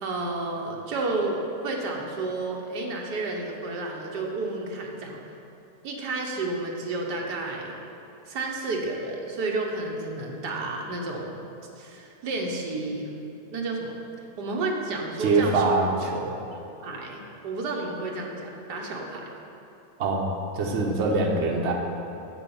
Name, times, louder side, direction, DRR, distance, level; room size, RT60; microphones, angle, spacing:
voice 1, 0.0-5.3 5.8-7.7 8.3-11.4 11.8-13.1 13.5-13.9 14.4-15.6 16.5-19.3, right 2 dB, 85° right, 0 dB, 1.7 m, -31 dB
voice 2, 15.2-16.4 20.0-21.7, right 3 dB, 45° right, 0 dB, 1.2 m, -24 dB
8.0 x 6.8 x 7.1 m, 2.9 s
omnidirectional pair, 1.7 m